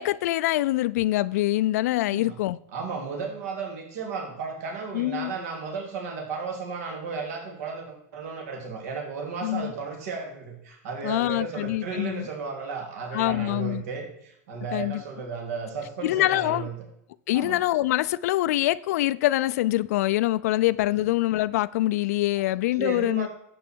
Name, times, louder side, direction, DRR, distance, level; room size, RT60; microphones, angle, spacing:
voice 1, 0.0-2.6 4.9-5.3 9.4-9.7 11.0-12.3 13.1-13.8 14.7-15.0 16.0-16.7 17.3-23.3, left 16 dB, 75° left, 0.4 m, -24 dB
voice 2, 2.7-16.7 17.3-17.6 22.8-23.3, right 5 dB, 70° right, 3.0 m, -34 dB
11.5 x 8.4 x 4.5 m
supercardioid pair, 130°, 9 cm